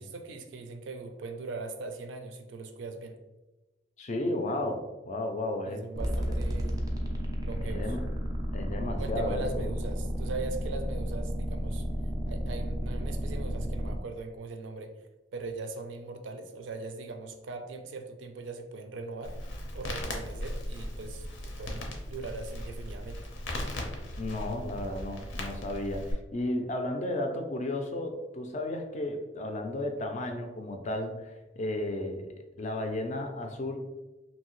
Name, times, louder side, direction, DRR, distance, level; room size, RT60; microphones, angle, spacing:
voice 1, 0.0-3.2 5.6-7.8 9.0-11.9 12.3-14.9 15.3-19.4 19.7-23.2, right 3 dB, 75° right, 6 dB, 0.4 m, -40 dB
voice 2, 4.0-6.3 7.6-8.0 8.5-9.6 24.2-33.8, left 1 dB, 40° left, 5 dB, 0.4 m, -34 dB
sound 1, 6.0-14.0, equal, 20° right, 0.4 m, -32 dB
Crackle, 19.2-26.1, left 1 dB, 90° left, 0.7 m, -38 dB
2.7 x 2.7 x 3.0 m, 1.1 s
head